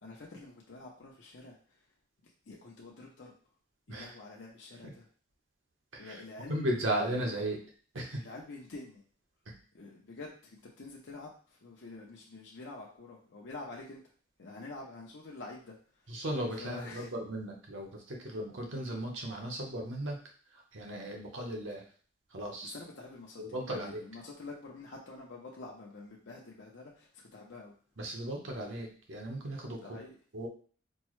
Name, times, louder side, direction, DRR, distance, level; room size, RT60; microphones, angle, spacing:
voice 1, 0.0-1.8 2.2-3.3 3.9-5.1 6.0-7.1 8.2-9.0 9.7-14.0 14.4-16.2 16.6-17.1 22.6-27.7 29.8-30.2, left 3 dB, 65° left, -2 dB, 0.6 m, -47 dB
voice 2, 5.9-6.2 6.5-7.6 7.9-8.2 9.5-9.6 16.1-20.2 20.5-21.8 22.3-22.7 23.4-24.0 28.0-30.0 30.3-30.5, right 1 dB, 85° right, 0 dB, 1.0 m, -36 dB
4.4 x 2.1 x 3.0 m, 0.43 s
head